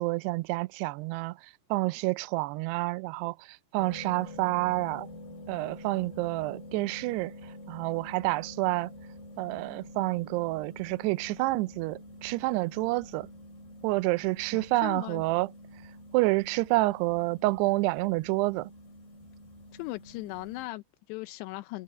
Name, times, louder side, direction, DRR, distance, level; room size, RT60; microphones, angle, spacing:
voice 1, 0.0-1.4 1.7-5.1 5.5-7.3 7.7-8.9 9.4-13.3 13.8-15.5 16.1-18.7, right 21 dB, 85° right, 2.5 m, -28 dB
sound 1, 3.8-20.7, left 1 dB, 70° left, 9.9 m, -47 dB
voice 2, 14.5-15.2 19.7-21.8, left 20 dB, 85° left, 2.9 m, -38 dB
omnidirectional pair, 4.9 m